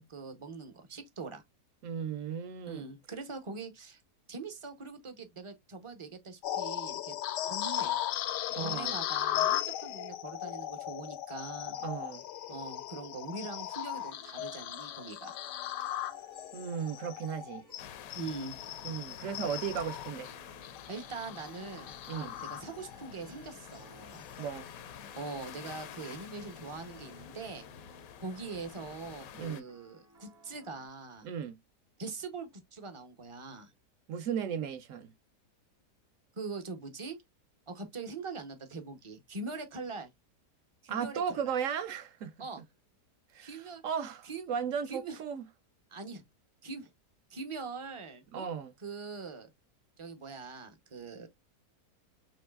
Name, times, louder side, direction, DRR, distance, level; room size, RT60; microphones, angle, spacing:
voice 1, 0.1-1.4 2.7-4.0 4.3-7.1 7.5-8.0 8.6-11.8 12.5-15.4 18.1-18.6 20.9-24.3 25.1-27.6 28.2-31.3 32.0-33.7 36.4-37.2 37.7-40.1 40.8-41.5 42.4-42.6 43.4-43.8 44.2-44.5 44.9-45.2 45.9-46.2 46.6-46.9 47.3-48.5 48.8-49.5 50.0-51.3, right 4 dB, 35° right, 0.5 m, -42 dB
voice 2, 1.8-2.9 8.5-9.0 11.8-12.2 16.5-17.6 18.8-20.3 22.1-22.3 24.4-24.7 29.3-29.7 31.2-31.6 34.1-35.1 40.9-42.3 43.3-45.5 48.3-48.7, right 7 dB, 65° right, 0.9 m, -36 dB
sound 1, 6.4-23.1 23.5-23.8 24.3-24.5, left 12 dB, 85° left, 1.2 m, -37 dB
sound 2, 13.5-30.9, right 1 dB, 85° right, 3.8 m, -60 dB
sound 3, 17.8-29.6, left 9 dB, 70° left, 0.9 m, -49 dB
7.0 x 3.1 x 2.3 m
omnidirectional pair, 1.8 m